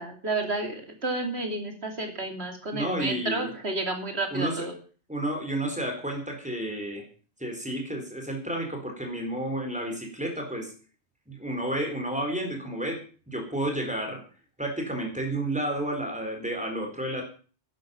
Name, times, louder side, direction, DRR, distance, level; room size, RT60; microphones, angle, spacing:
voice 1, 0.0-4.7, right 2 dB, 70° right, 4 dB, 3.1 m, -31 dB
voice 2, 2.7-3.5 4.3-4.7 5.1-7.0 7.4-10.7 11.3-13.0 13.3-14.2 14.6-17.2, right 1 dB, 5° right, 2 dB, 4.4 m, -31 dB
11.5 x 10.5 x 7.3 m, 0.39 s
omnidirectional pair, 1.1 m